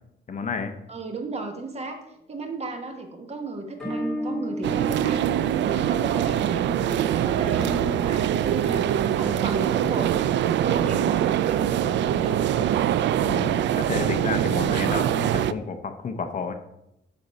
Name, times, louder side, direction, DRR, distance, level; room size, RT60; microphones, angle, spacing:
voice 1, 0.3-0.7 13.2-16.5, left 5 dB, 40° left, 7 dB, 0.7 m, -30 dB
voice 2, 0.9-10.2 10.6-12.5, right 3 dB, 35° right, 4 dB, 1.3 m, -34 dB
sound 1, 2.1-2.6 3.8-10.9 12.5-12.6, left 1 dB, 5° left, 3.3 m, -36 dB
sound 2, 4.6-15.5, right 11 dB, 65° right, 0.4 m, -23 dB
12.0 x 4.1 x 5.3 m, 0.84 s
cardioid pair, 150°, 20 cm